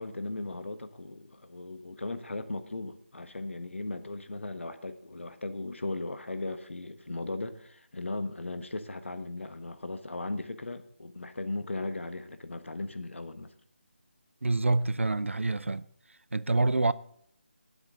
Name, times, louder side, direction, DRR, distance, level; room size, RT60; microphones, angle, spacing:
voice 1, 0.0-13.5 16.6-16.7, left 2 dB, 75° left, 1.3 m, -37 dB
voice 2, 14.4-15.8 16.3-16.9, right 2 dB, 80° right, 0.6 m, -26 dB
18.5 x 7.9 x 3.8 m
figure-of-eight pair, 165°, 7 cm